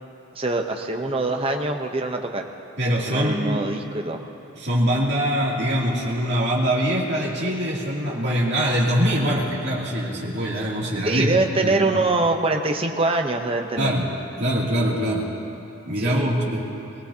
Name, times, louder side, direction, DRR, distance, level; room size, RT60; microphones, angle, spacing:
voice 1, 0.3-2.4 3.1-4.2 11.0-13.9 16.0-16.3, right 2 dB, 25° right, 3 dB, 0.8 m, -24 dB
voice 2, 2.8-3.6 4.6-11.3 11.6-12.0 13.8-14.1 14.4-15.3 15.9-16.6, equal, 55° right, -5 dB, 2.7 m, -23 dB
21.0 x 19.5 x 2.8 m, 2.8 s
head